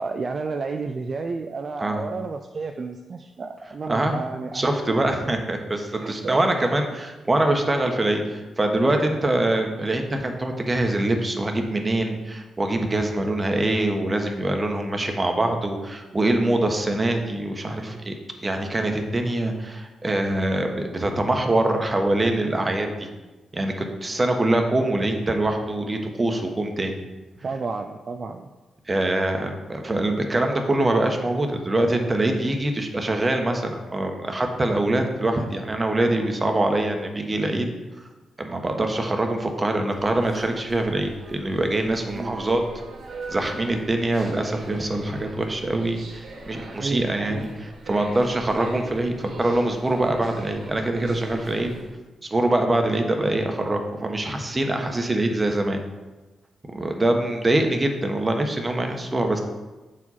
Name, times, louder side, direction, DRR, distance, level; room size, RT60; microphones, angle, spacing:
voice 1, 0.0-5.0 5.9-6.8 27.4-28.5 42.1-42.4 46.7-47.4 48.5-48.8, right 4 dB, 50° right, 5 dB, 0.4 m, -32 dB
voice 2, 4.5-22.9 23.5-27.0 28.9-37.7 38.4-42.6 43.3-51.7 52.2-55.8 56.7-59.4, right 1 dB, 30° right, 4 dB, 1.1 m, -24 dB
sound 1, 39.9-51.9, right 2 dB, 65° right, 1.3 m, -41 dB
7.1 x 4.7 x 4.1 m, 1.2 s
supercardioid pair, 45°, 0 cm